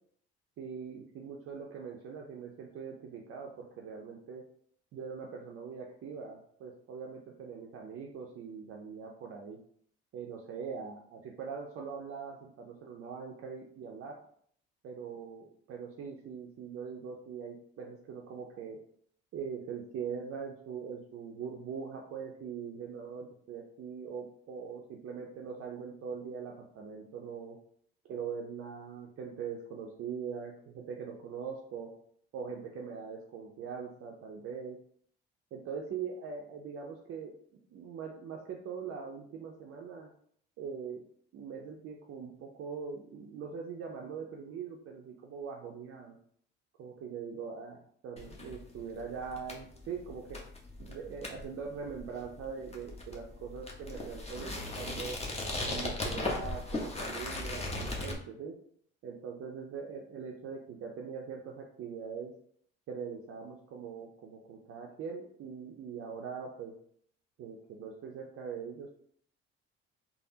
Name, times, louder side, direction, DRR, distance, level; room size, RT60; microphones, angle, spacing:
voice 1, 0.6-4.4 4.9-9.6 10.1-14.2 14.8-18.8 19.3-27.6 28.0-31.9 32.3-34.8 35.5-37.3 37.7-40.1 40.6-41.0 41.3-46.2 46.8-47.8 48.0-50.4 50.8-55.2 55.6-58.6 59.0-62.3 62.9-66.8 67.4-68.9, right 6 dB, 45° right, 0 dB, 0.5 m, -42 dB
sound 1, 48.2-58.1, left 2 dB, 20° left, 0.8 m, -38 dB
3.3 x 2.0 x 2.7 m, 0.64 s
hypercardioid pair, 55°, 31 cm